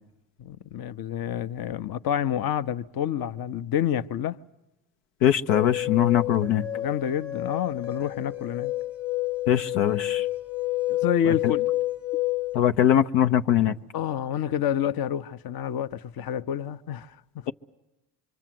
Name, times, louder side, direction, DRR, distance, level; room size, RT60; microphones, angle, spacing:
voice 1, 0.4-4.4 6.7-8.7 10.9-11.7 13.9-17.2, left 9 dB, 45° left, 1.0 m, -28 dB
voice 2, 5.2-6.7 9.5-10.3 11.3-11.4 12.5-13.8, left 10 dB, 75° left, 1.0 m, -21 dB
sound 1, 5.5-12.7, left 16 dB, 30° left, 1.4 m, -29 dB
25.0 x 24.5 x 7.8 m
hypercardioid pair, 65°, 49 cm